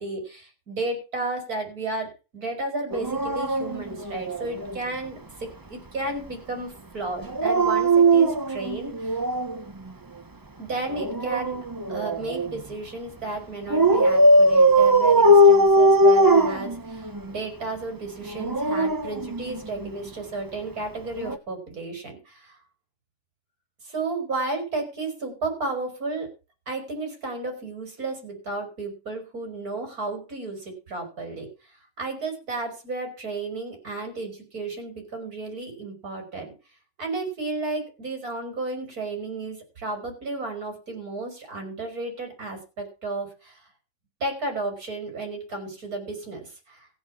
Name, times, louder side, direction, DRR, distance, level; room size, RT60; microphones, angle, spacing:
voice 1, 0.0-9.2 10.6-22.6 23.8-26.3 26.7-31.5 32.0-36.5 37.0-43.6 44.2-46.9, right 3 dB, 55° right, 4 dB, 5.3 m, -33 dB
Dog, 2.9-4.8 7.2-9.6 10.9-12.6 13.7-17.3 18.2-19.9 21.1-21.4, right 1 dB, 25° right, 0.4 m, -20 dB
15.0 x 7.1 x 7.2 m, 0.32 s
omnidirectional pair, 1.9 m